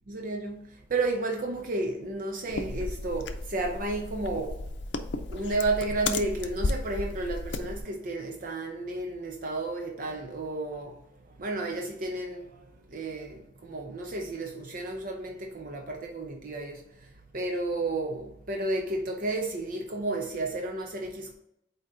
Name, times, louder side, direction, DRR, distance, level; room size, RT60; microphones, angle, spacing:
voice 1, 0.1-4.7 5.3-11.0 11.4-17.1 17.3-21.3, right 2 dB, 50° right, 0.7 m, -32 dB
sound 1, 2.5-7.8, left 3 dB, 80° left, 0.6 m, -34 dB
8.6 x 2.9 x 3.8 m
head